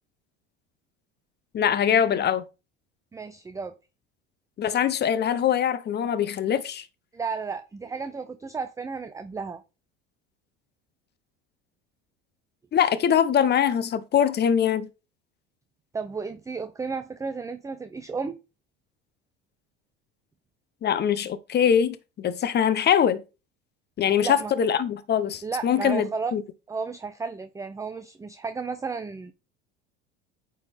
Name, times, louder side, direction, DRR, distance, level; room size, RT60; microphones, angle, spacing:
voice 1, 1.5-2.4 4.6-6.8 12.7-14.9 20.8-23.2 24.0-26.4, left 8 dB, 35° left, 0.8 m, -23 dB
voice 2, 3.1-3.7 7.1-9.6 15.9-18.4 24.2-24.5 25.4-26.3 26.7-29.3, right 5 dB, 10° right, 0.5 m, -33 dB
8.9 x 3.8 x 3.4 m
supercardioid pair, 90°, 29 cm